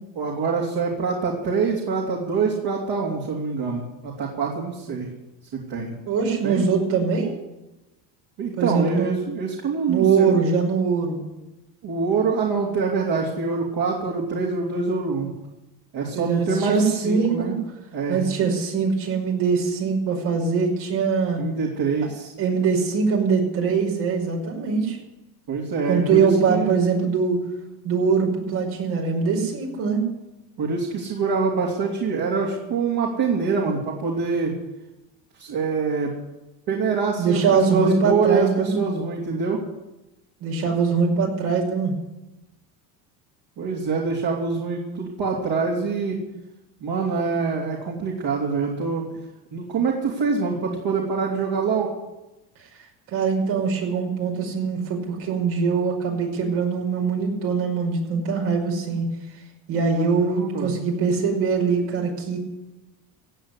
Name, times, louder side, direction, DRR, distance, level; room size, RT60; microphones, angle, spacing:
voice 1, 0.2-5.1 5.5-5.9 6.4-6.6 8.4-10.3 11.8-15.3 15.9-17.6 17.9-18.2 21.4-22.3 25.5-26.7 30.6-34.5 35.4-36.1 36.7-37.4 37.7-39.6 43.6-46.2 46.8-49.0 49.5-51.9 59.9-60.7, right 4 dB, 55° right, -2 dB, 3.4 m, -25 dB
voice 2, 6.0-7.4 8.6-9.2 9.9-11.2 16.1-17.6 18.1-21.4 22.4-25.0 25.9-27.4 27.8-30.1 37.2-38.9 40.4-42.0 53.1-59.1 59.7-62.4, right 5 dB, 75° right, 0 dB, 5.7 m, -22 dB
16.5 x 8.3 x 9.8 m, 1.0 s
supercardioid pair, 85°, 48 cm